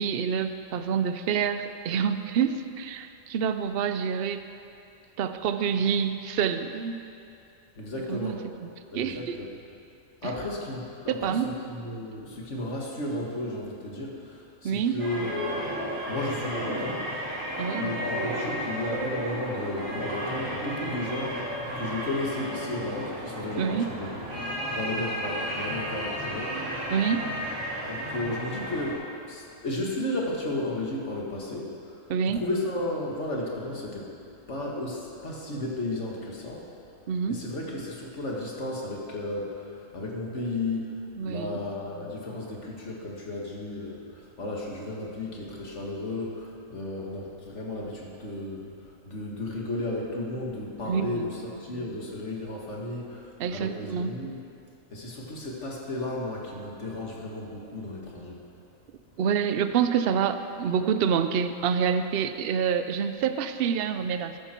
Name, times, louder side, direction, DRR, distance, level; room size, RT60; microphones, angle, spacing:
voice 1, 0.0-4.4 5.2-7.0 8.1-9.4 11.1-11.5 14.6-15.0 17.6-18.0 23.6-23.9 26.9-27.3 32.1-32.4 37.1-37.4 41.2-41.6 50.8-51.3 53.4-54.1 59.2-64.4, right 7 dB, 55° right, 9 dB, 0.7 m, -27 dB
voice 2, 7.8-8.4 8.9-9.5 10.2-17.1 17.8-24.3 24.7-26.9 27.8-34.1 34.5-36.6 37.3-54.4 54.9-58.4, left 1 dB, 55° left, -2 dB, 2.1 m, -34 dB
sound 1, 15.0-28.9, equal, 75° right, 4.0 m, -33 dB
14.0 x 11.0 x 4.5 m, 2.6 s
omnidirectional pair, 1.4 m